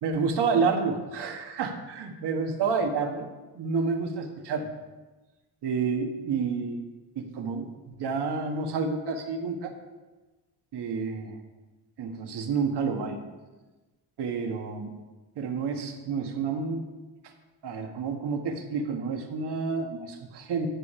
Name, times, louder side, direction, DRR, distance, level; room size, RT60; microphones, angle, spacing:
voice 1, 0.0-3.3 3.5-4.7 5.6-6.8 7.1-9.7 10.7-11.4 12.0-13.2 14.2-14.9 15.4-16.8 17.2-17.3 17.6-20.7, right 5 dB, 75° right, 4 dB, 1.6 m, -29 dB
12.5 x 6.7 x 5.6 m, 1.2 s
cardioid pair, 120°, 40 cm